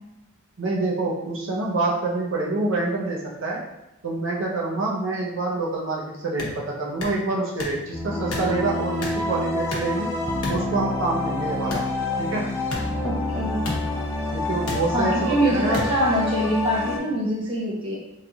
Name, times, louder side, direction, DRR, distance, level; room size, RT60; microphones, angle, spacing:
voice 1, 0.6-3.6 4.0-10.1 10.5-11.8 12.2-12.4 14.3-15.8, right 3 dB, 60° right, -3 dB, 0.7 m, -26 dB
sound 1, 6.4-6.5 7.0-7.2 7.6-7.8 8.3-8.5 9.0-9.2 9.7-10.0 10.4-10.6 11.7-11.9 12.7-12.8 13.6-13.8 14.7-14.8 15.7-15.9, left 2 dB, 90° left, 0.8 m, -30 dB
sound 2, 7.9-17.0, left 2 dB, 10° left, 0.4 m, -28 dB
voice 2, 13.0-13.6 14.9-18.0, right 1 dB, 25° right, -5 dB, 0.6 m, -24 dB
3.9 x 3.2 x 2.3 m, 0.94 s
head